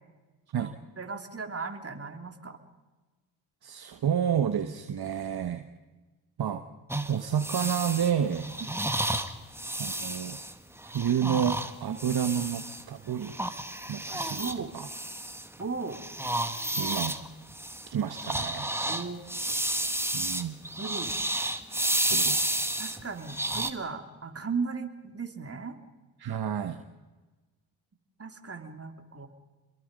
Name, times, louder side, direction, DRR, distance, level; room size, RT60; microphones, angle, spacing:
voice 1, 0.6-2.6 11.9-12.0 14.4-14.7 15.6-16.0 18.9-19.2 20.8-21.1 22.8-25.8 28.2-29.3, right 5 dB, 30° right, 5 dB, 3.4 m, -36 dB
voice 2, 3.6-5.7 6.4-6.6 7.1-8.5 9.8-10.4 10.8-13.3 13.9-14.9 16.8-17.2 17.9-18.8 20.1-20.6 22.1-22.4 26.2-26.8, right 8 dB, 50° right, 8 dB, 1.5 m, -30 dB
sound 1, 6.9-12.8 13.2-15.6 15.9-23.7, right 1 dB, 5° right, 2.0 m, -31 dB
28.0 x 22.0 x 5.4 m, 1.2 s
supercardioid pair, 55°, 49 cm